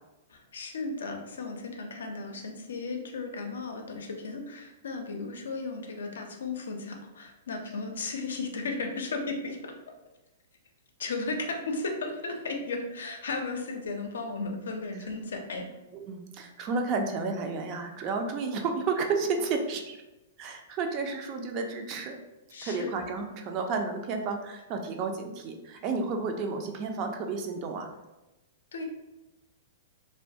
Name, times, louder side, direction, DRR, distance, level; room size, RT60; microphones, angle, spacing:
voice 1, 0.3-9.7 11.0-15.7 22.5-22.9 28.7-28.8, left 3 dB, 85° left, 3 dB, 0.4 m, -35 dB
voice 2, 15.9-20.0 20.4-22.2 22.6-27.9, right 4 dB, 40° right, 4 dB, 0.3 m, -31 dB
2.2 x 2.1 x 2.6 m, 1.0 s
hypercardioid pair, 125°, 0 cm